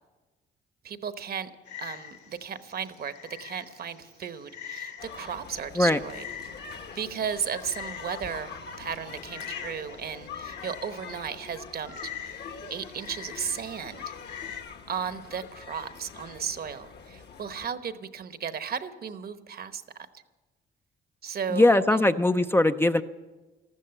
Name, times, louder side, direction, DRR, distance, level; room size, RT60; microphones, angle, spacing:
voice 1, 0.8-1.5 1.8-3.1 3.4-6.3 6.9-11.9 12.2-12.3 12.7-14.1 14.9-19.8 21.2-22.0, right 7 dB, 50° right, 11 dB, 1.0 m, -35 dB
Frog, 1.7-14.6, left 9 dB, 75° left, 2.6 m, -45 dB
sound 1, 5.0-17.7, left 6 dB, 60° left, 1.5 m, -44 dB
voice 2, 21.5-23.0, left 1 dB, 10° left, 9 dB, 0.5 m, -21 dB
13.5 x 13.0 x 7.8 m, 1.2 s
cardioid pair, 90°, 20 cm